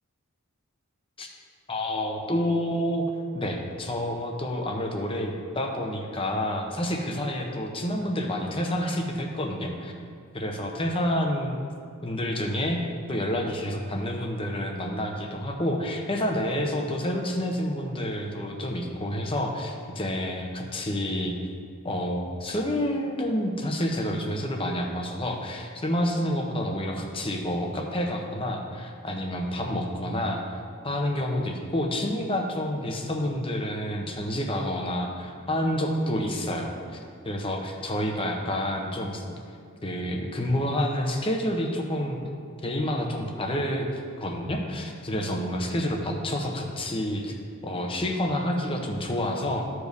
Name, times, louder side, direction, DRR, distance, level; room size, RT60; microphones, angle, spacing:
voice 1, 1.7-3.1 3.3-10.1 10.3-11.6 12.0-12.8 13.1-21.3 21.8-37.0 37.2-39.2 39.8-42.2 42.6-43.9 44.2-47.3 47.6-49.7, left 1 dB, 25° left, 2 dB, 0.7 m, -29 dB
13.5 x 5.0 x 2.7 m, 2.3 s
head